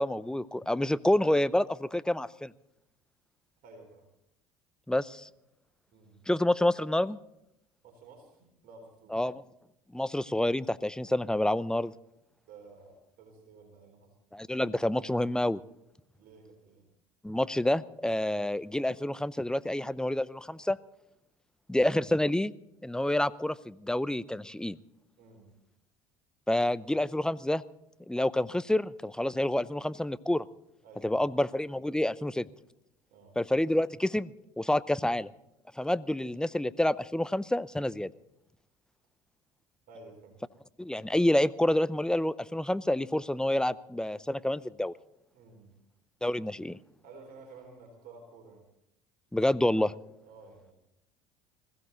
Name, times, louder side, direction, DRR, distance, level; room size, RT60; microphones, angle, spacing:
voice 1, 0.0-2.5 4.9-5.3 6.3-7.2 9.1-9.4 9.9-11.9 14.3-15.6 17.2-20.8 21.7-22.5 22.8-24.8 26.5-27.6 28.1-30.5 31.0-32.5 33.4-35.3 35.8-38.1 40.8-44.9 46.2-46.8 49.3-49.9, left 1 dB, 5° left, 17 dB, 0.7 m, -28 dB
voice 2, 3.6-4.1 5.9-6.3 7.8-9.5 12.5-14.2 16.2-16.9 25.2-25.5 30.8-31.2 33.1-33.4 39.9-40.4 45.3-45.8 47.0-48.7 50.2-50.7, right 3 dB, 55° right, 3 dB, 3.9 m, -53 dB
21.0 x 16.0 x 3.9 m, 0.82 s
hypercardioid pair, 75°, 18 cm